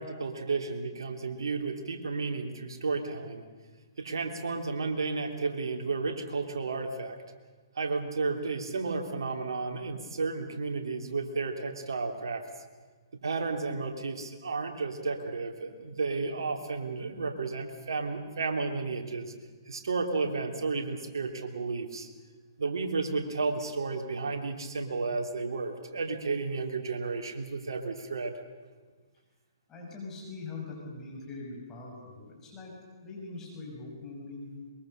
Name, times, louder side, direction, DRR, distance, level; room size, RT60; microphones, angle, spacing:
voice 1, 0.0-3.4 4.0-7.2 7.7-12.4 13.2-19.3 19.6-22.1 22.6-28.4, right 4 dB, 75° right, 3 dB, 3.3 m, -32 dB
voice 2, 29.7-32.7 33.0-34.7, left 3 dB, 20° left, -2 dB, 6.3 m, -42 dB
23.0 x 22.5 x 6.7 m, 1.4 s
hypercardioid pair, 135°, 2 cm